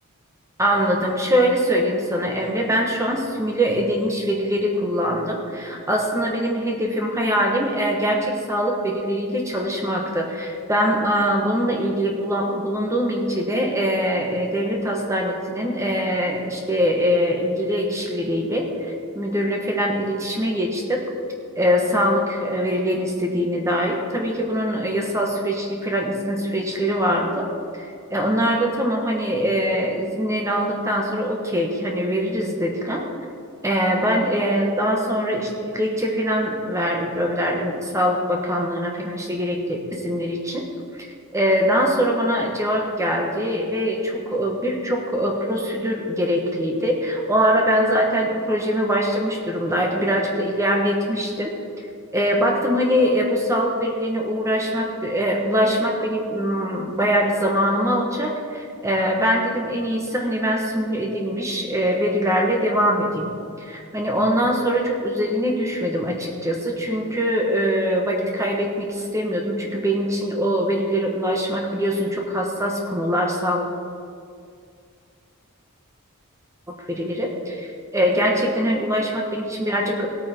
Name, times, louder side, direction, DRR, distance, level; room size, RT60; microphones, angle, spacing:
voice 1, 0.6-18.7 19.1-21.0 21.6-27.5 27.7-27.8 28.1-33.0 33.6-40.7 41.3-51.5 52.1-63.3 63.6-73.7 76.9-77.7 77.9-80.1, equal, 15° right, 0 dB, 1.4 m, -23 dB
18.0 x 8.6 x 4.5 m, 2.3 s
head